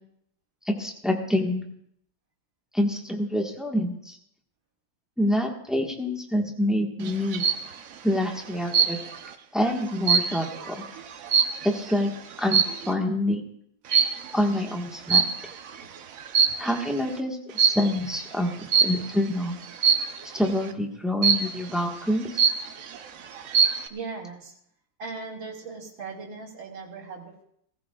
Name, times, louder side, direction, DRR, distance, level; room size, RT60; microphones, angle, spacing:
voice 1, 0.6-1.6 2.7-4.2 5.2-7.5 8.0-9.0 9.5-10.8 11.6-12.1 12.4-13.4 14.3-15.3 16.6-19.6 20.3-22.4, left 1 dB, ahead, 1 dB, 1.1 m, -26 dB
sound 1, 7.1-7.7 8.7-9.3 9.7-11.9 12.5-12.9 13.9-14.3 15.1-15.7 16.2-16.9 17.6-17.9 18.7-19.1 19.8-20.2 21.2-21.7 22.1-22.2 22.4-23.0 23.4-23.9, right 7 dB, 60° right, 0.9 m, -22 dB
voice 2, 23.9-24.5 25.0-27.4, right 4 dB, 80° right, -3 dB, 2.8 m, -38 dB
18.0 x 15.5 x 2.4 m, 0.70 s
omnidirectional pair, 2.1 m